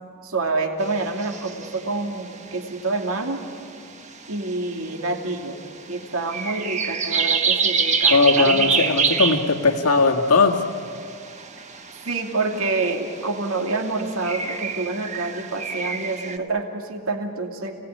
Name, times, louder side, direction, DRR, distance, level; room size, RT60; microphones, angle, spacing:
voice 1, 0.2-3.4 4.3-5.6 5.9-8.9 9.3-9.4 12.1-17.7, right 3 dB, 70° right, 3 dB, 2.5 m, -27 dB
sound 1, 0.8-16.4, right 5 dB, 30° right, 1.3 m, -27 dB
voice 2, 8.1-10.6, left 4 dB, 90° left, 3 dB, 2.0 m, -18 dB
30.0 x 18.5 x 9.9 m, 2.3 s
head